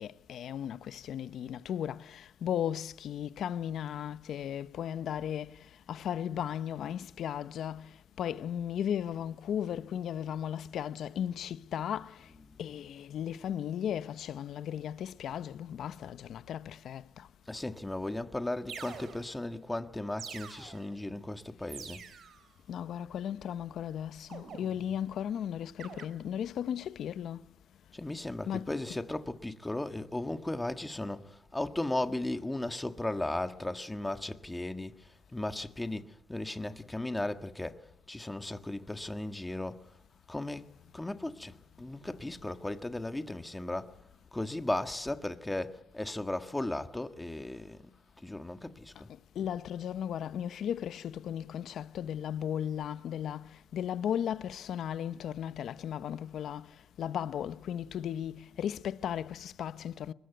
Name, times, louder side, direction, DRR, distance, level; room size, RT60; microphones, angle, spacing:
voice 1, 0.0-12.3 12.6-17.3 22.7-27.4 28.5-28.7 49.1-60.1, left 9 dB, 70° left, 0.9 m, -36 dB
voice 2, 12.3-12.6 17.5-22.0 27.9-34.9 35.3-37.8 38.1-39.8 40.3-40.6 40.9-43.9 44.3-47.8 48.2-49.1, left 1 dB, 10° left, 1.6 m, -36 dB
sound 1, 18.0-18.1 18.7-19.5 20.2-21.0 21.7-22.5 24.3-25.1 25.8-26.0, right 7 dB, 60° right, 3.8 m, -46 dB
22.5 x 21.0 x 9.3 m
cardioid pair, 90°, 0 cm